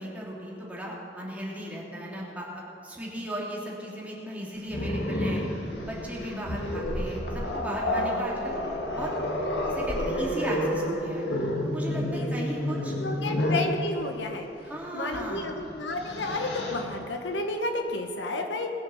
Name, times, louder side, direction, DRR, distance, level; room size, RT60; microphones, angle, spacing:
voice 1, 0.0-8.6 9.0-9.1 9.7-11.3 11.6-13.0 13.2-13.3 14.6-15.6, equal, 10° right, -4 dB, 2.8 m, -36 dB
Growling, 4.7-13.7 15.1-15.3 15.7-16.8, left 1 dB, 70° left, 1.9 m, -30 dB
voice 2, 12.1-12.4 13.0-14.5 14.9-18.7, left 2 dB, 90° left, 4 dB, 1.3 m, -31 dB
20.0 x 7.1 x 7.2 m, 2.8 s
head